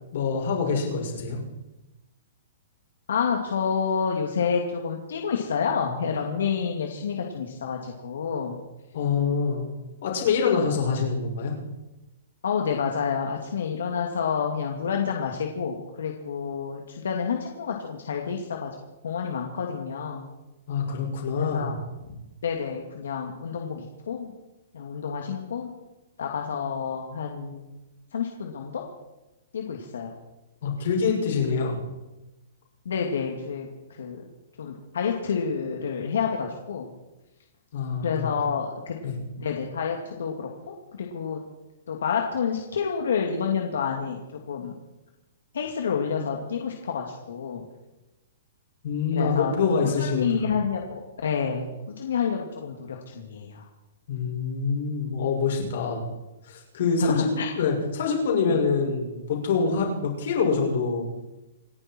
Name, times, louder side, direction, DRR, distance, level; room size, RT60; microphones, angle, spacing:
voice 1, 0.1-1.4 8.9-9.7 10.0-11.5 20.7-21.7 30.6-31.8 37.7-38.3 39.0-39.2 48.8-50.4 54.1-56.0 56.5-57.3 57.5-61.0, left 5 dB, 55° left, 0 dB, 5.9 m, -25 dB
voice 2, 3.1-8.6 12.4-18.7 19.0-20.3 21.4-21.8 22.4-24.3 24.7-25.7 26.2-27.6 28.1-28.8 29.5-30.1 32.9-33.7 34.0-34.2 34.6-36.9 38.0-39.0 39.4-41.4 41.9-44.7 45.5-47.6 49.1-49.5 50.0-53.6 57.0-57.5 58.5-58.6, left 6 dB, 85° left, 1 dB, 2.4 m, -29 dB
28.0 x 11.0 x 4.5 m, 1.0 s
hypercardioid pair, 170°, 0 cm